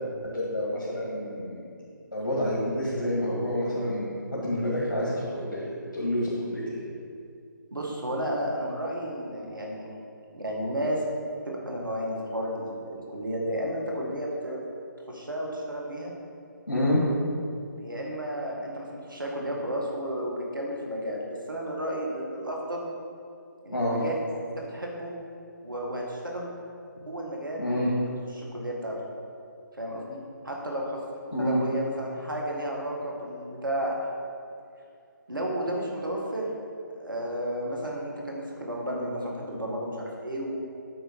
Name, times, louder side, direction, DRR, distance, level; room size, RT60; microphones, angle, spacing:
voice 1, 0.2-1.7 2.1-6.8 16.7-17.0 23.7-24.0 27.6-27.9 31.3-31.6, equal, 70° left, -6 dB, 1.9 m, -28 dB
voice 2, 7.7-9.9 10.3-11.0 11.5-14.6 15.1-16.1 17.8-22.9 23.6-24.1 24.6-25.1 25.6-26.5 27.1-27.6 28.3-29.0 29.8-30.2 30.4-31.0 31.4-34.0 35.3-36.5 37.0-40.6, equal, 75° right, -2 dB, 1.9 m, -32 dB
8.8 x 4.7 x 5.2 m, 2.4 s
figure-of-eight pair, 145°, 11 cm